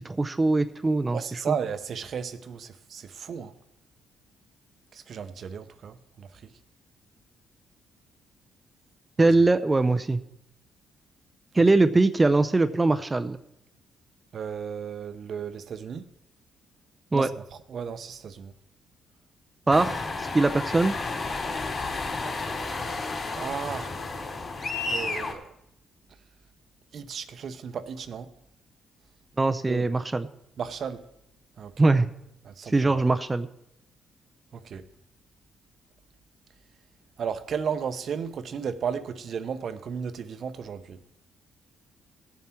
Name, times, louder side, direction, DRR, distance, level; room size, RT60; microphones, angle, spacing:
voice 1, 0.0-1.2 9.2-10.2 11.5-13.4 17.1-17.3 19.7-20.9 29.4-30.3 31.8-32.1 32.7-33.5, right 2 dB, 20° right, 0.5 m, -22 dB
voice 2, 1.1-3.5 4.9-6.5 9.2-9.3 11.5-11.6 14.3-16.1 17.1-17.3 17.7-18.5 22.2-23.9 24.9-25.5 26.9-28.3 29.7-29.9 30.6-31.1 31.6-31.7 32.4-33.0 34.5-34.9 37.2-41.0, right 7 dB, 55° right, 0.8 m, -34 dB
sound 1, 19.7-25.3, left 3 dB, 35° left, 3.3 m, -32 dB
17.0 x 7.2 x 4.4 m
cardioid pair, 90°, 0 cm